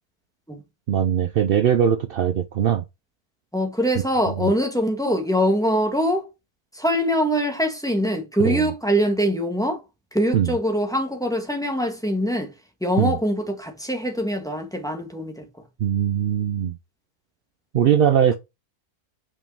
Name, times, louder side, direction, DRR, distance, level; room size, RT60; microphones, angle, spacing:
voice 1, 0.9-2.8 4.3-4.5 8.4-8.7 10.3-10.6 13.0-13.2 15.8-16.8 17.7-18.3, right 9 dB, 65° right, 0.5 m, -21 dB
voice 2, 3.5-6.2 6.7-9.8 10.1-12.5 12.8-15.4, equal, ahead, 1.4 m, -23 dB
5.4 x 5.3 x 5.4 m
omnidirectional pair, 1.6 m